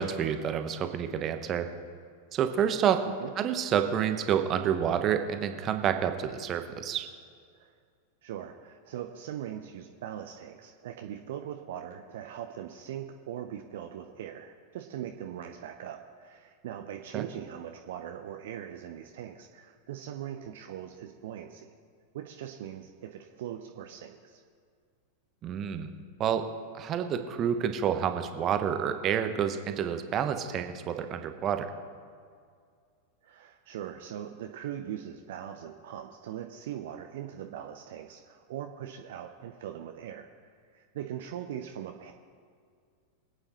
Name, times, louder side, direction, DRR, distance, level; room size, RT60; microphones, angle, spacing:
voice 1, 0.0-1.7 2.3-3.0 3.4-7.1 17.1-17.2 25.4-25.9 26.2-26.5 26.7-31.7, right 8 dB, 30° right, 8 dB, 1.0 m, -28 dB
voice 2, 8.2-21.7 22.1-24.4 33.2-40.3 40.7-42.1, right 10 dB, 55° right, 5 dB, 0.7 m, -41 dB
24.5 x 8.8 x 3.1 m, 2.2 s
figure-of-eight pair, 90°, 0 cm